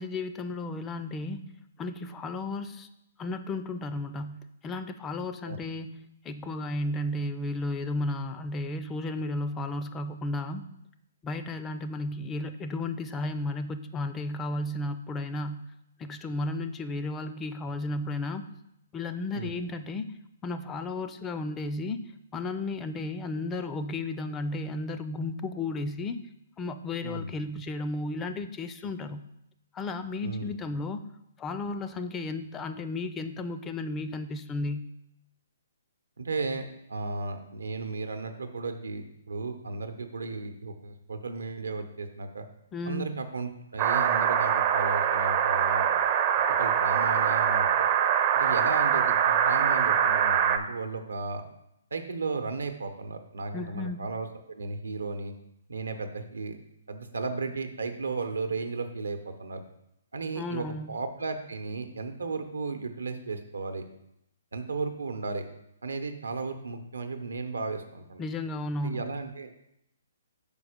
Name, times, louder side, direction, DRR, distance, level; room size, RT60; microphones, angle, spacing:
voice 1, 0.0-1.5 1.8-2.9 3.2-10.7 11.2-15.7 16.0-18.5 18.9-26.2 26.6-29.2 29.7-31.1 31.4-34.9 42.7-43.1 53.5-54.0 60.4-60.9 68.2-69.0, left 2 dB, 15° left, 9 dB, 0.4 m, -34 dB
voice 2, 27.0-27.4 30.2-30.5 36.2-42.5 42.9-45.9 46.6-47.7 48.3-51.4 51.9-55.3 55.7-56.6 56.9-59.6 60.1-63.8 64.5-65.5 65.8-68.2 68.8-69.5, right 3 dB, 85° right, 7 dB, 0.8 m, -34 dB
sound 1, 43.8-50.6, right 8 dB, 35° right, 0.5 m, -24 dB
5.3 x 4.4 x 5.0 m, 0.80 s
hypercardioid pair, 140°, 0 cm